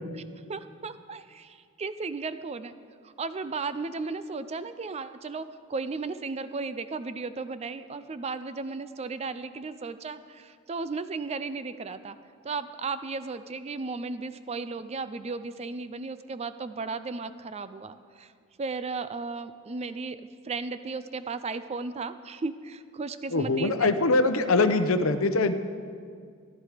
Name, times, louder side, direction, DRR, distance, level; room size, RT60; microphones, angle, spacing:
voice 1, 0.5-2.7 3.0-12.2 12.4-18.3 18.6-20.2 20.4-23.9, right 4 dB, 30° right, 12 dB, 0.4 m, -35 dB
voice 2, 23.3-25.5, left 3 dB, 65° left, 10 dB, 0.8 m, -23 dB
14.0 x 12.0 x 5.0 m, 2.1 s
head